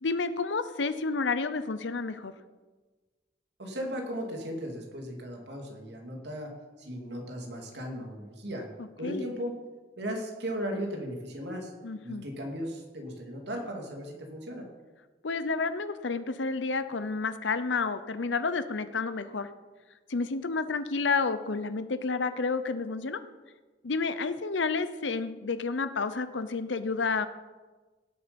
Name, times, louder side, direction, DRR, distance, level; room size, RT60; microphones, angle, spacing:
voice 1, 0.0-2.3 9.0-9.2 11.8-12.2 15.2-19.5 20.1-23.2 23.8-27.3, left 4 dB, 85° left, 12 dB, 0.8 m, -30 dB
voice 2, 3.6-6.5 6.8-8.7 9.0-9.5 10.0-11.7 12.0-14.7, equal, 65° right, 2 dB, 2.7 m, -36 dB
17.5 x 8.1 x 5.3 m, 1.3 s
head